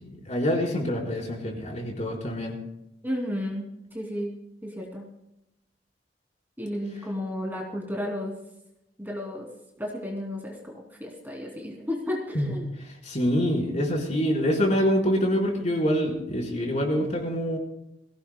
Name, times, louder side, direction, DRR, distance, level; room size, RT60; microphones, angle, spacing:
voice 1, 0.0-2.5 12.3-12.5 12.9-17.6, equal, 40° left, -1 dB, 4.3 m, -26 dB
voice 2, 3.0-3.6 3.9-4.3 4.6-5.0 6.6-8.4 9.0-9.5 9.8-12.7, left 1 dB, 10° right, -1 dB, 2.7 m, -33 dB
23.5 x 17.0 x 2.2 m, 0.85 s
head